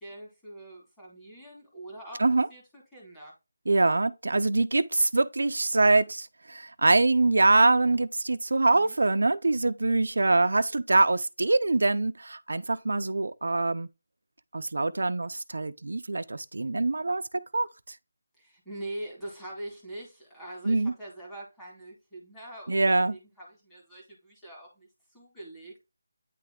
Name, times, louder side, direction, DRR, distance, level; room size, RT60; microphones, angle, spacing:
voice 1, 0.0-3.3 8.7-9.0 18.4-25.8, right 1 dB, 5° left, 1.9 m, -43 dB
voice 2, 3.7-13.9 14.5-17.2 17.5-17.7 20.7-20.9 22.7-23.1, right 2 dB, 80° right, 0.5 m, -24 dB
9.1 x 3.3 x 3.6 m
figure-of-eight pair, 175°, 0 cm